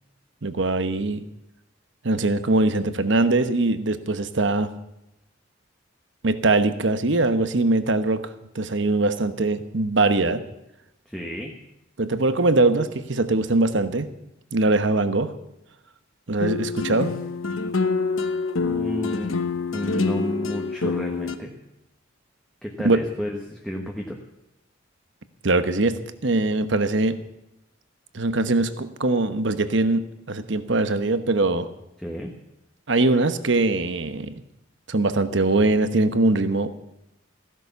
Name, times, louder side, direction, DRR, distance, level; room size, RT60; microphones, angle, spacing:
voice 1, 0.4-1.2 2.0-4.7 6.2-10.4 12.0-14.1 14.5-15.3 16.3-17.1 22.8-23.0 25.4-27.2 28.1-31.7 32.9-34.3 34.9-36.7, right 2 dB, 65° right, 11 dB, 1.0 m, -22 dB
voice 2, 11.1-11.5 18.6-19.3 19.7-21.5 22.6-24.2 32.0-32.3, equal, 5° left, -1 dB, 1.3 m, -31 dB
sound 1, 16.4-21.3, left 4 dB, 90° left, 1.0 m, -26 dB
15.0 x 11.0 x 6.9 m, 0.86 s
head